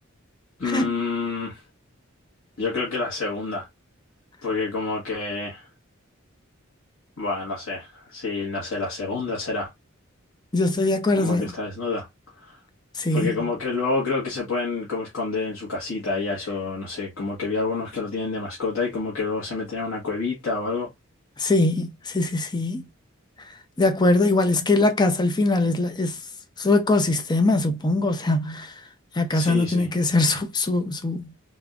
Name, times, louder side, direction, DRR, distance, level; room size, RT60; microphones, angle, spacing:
voice 1, 0.6-1.6 2.6-3.7 4.4-5.7 7.2-9.7 11.2-12.1 12.4-12.6 13.1-20.9 29.3-29.9, left 3 dB, 90° left, 1.5 m, -28 dB
voice 2, 10.5-11.5 12.9-13.5 21.4-22.8 23.4-26.2 26.6-28.8 29.1-31.3, left 2 dB, 20° left, 0.6 m, -22 dB
3.9 x 3.5 x 2.4 m
head